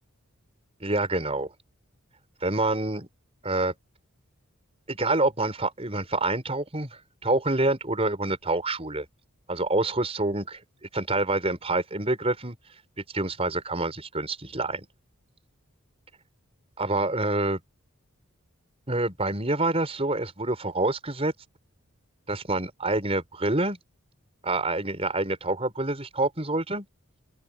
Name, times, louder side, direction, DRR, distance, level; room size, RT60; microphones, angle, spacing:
voice 1, 0.8-1.5 2.4-3.1 3.4-3.7 4.9-9.1 9.5-10.6 10.9-12.6 13.0-14.9 16.8-17.6 18.9-21.3 22.3-23.8 24.4-26.9, right 2 dB, 25° right, 5.3 m, -27 dB
open air
head